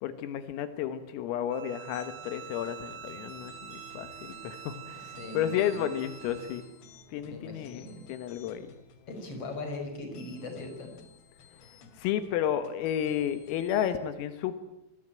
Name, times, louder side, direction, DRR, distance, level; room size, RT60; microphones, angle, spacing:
voice 1, 0.0-6.6 7.1-8.7 12.0-14.6, left 10 dB, 85° left, 10 dB, 4.1 m, -32 dB
Bowed string instrument, 1.5-6.7, right 10 dB, 85° right, 4.8 m, -46 dB
sound 1, 1.9-13.9, left 6 dB, 60° left, 4.3 m, -56 dB
Bowed string instrument 2, 3.1-8.4, right 2 dB, 35° right, 7.5 m, -55 dB
voice 2, 5.0-5.9 7.2-8.0 9.1-10.9, left 2 dB, 30° left, 5 dB, 5.9 m, -40 dB
26.5 x 20.5 x 8.9 m, 0.83 s
omnidirectional pair, 5.9 m